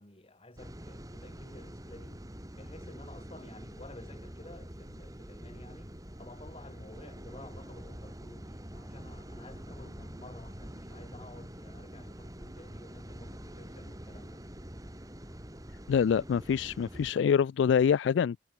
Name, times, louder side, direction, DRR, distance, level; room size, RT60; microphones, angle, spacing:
voice 1, 0.0-2.3 2.5-14.4, left 1 dB, 35° left, 4.1 m, -52 dB
sound 1, 0.6-17.1, equal, 20° right, 2.8 m, -46 dB
voice 2, 15.9-18.4, left 7 dB, 90° left, 0.3 m, -25 dB
head